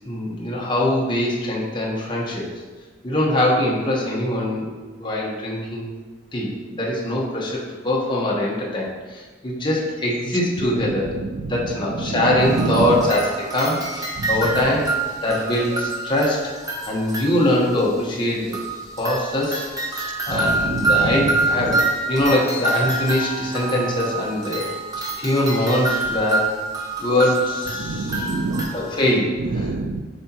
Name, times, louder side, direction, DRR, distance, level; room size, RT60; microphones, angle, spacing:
voice 1, 0.0-2.5 3.0-4.7 5.0-5.9 6.3-11.1 11.5-14.9 15.2-16.4 16.9-18.6 19.0-19.7 20.3-24.7 25.2-26.5 27.0-28.3 28.7-29.7, left 1 dB, 25° left, -4 dB, 1.1 m, -22 dB
voice 2, 10.8-11.4 12.0-13.0 14.2-14.3 20.3-21.3 27.8-28.7 29.5-30.0, right 3 dB, 75° right, 9 dB, 0.4 m, -26 dB
sound 1, 12.4-17.8 18.5-29.1, right 2 dB, 20° right, 0.9 m, -26 dB
7.7 x 4.3 x 3.0 m, 1.3 s
head